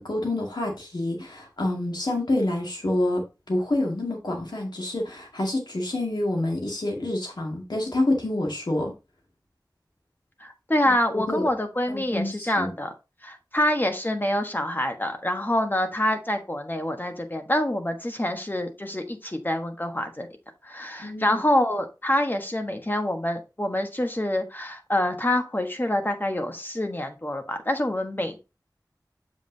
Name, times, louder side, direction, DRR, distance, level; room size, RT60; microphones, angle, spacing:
voice 1, 0.0-8.9 10.9-11.4 11.9-12.7 21.0-21.4, left 1 dB, 75° left, 2.0 m, -27 dB
voice 2, 10.4-12.9 13.2-20.3 20.6-28.4, left 1 dB, 25° left, 1.3 m, -26 dB
7.4 x 5.4 x 2.8 m
wide cardioid pair, 50°, 7 cm